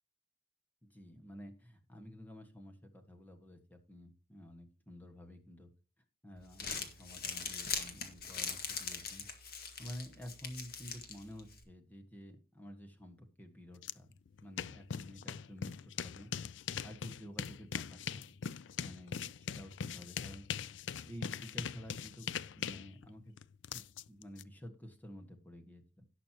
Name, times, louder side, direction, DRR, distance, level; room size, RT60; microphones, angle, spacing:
voice 1, 0.8-5.7 6.2-9.2 9.8-14.1 14.4-16.3 16.8-18.3 18.8-20.4 21.0-22.3 22.6-23.3 23.7-26.1, equal, 10° left, 3 dB, 1.6 m, -51 dB
Crumpling crinkling, 6.4-11.6, left 6 dB, 55° left, 1.9 m, -42 dB
sound 1, 13.8-13.9 14.3-24.4, left 7 dB, 80° left, 0.4 m, -41 dB
17.5 x 6.5 x 3.0 m, 0.33 s
head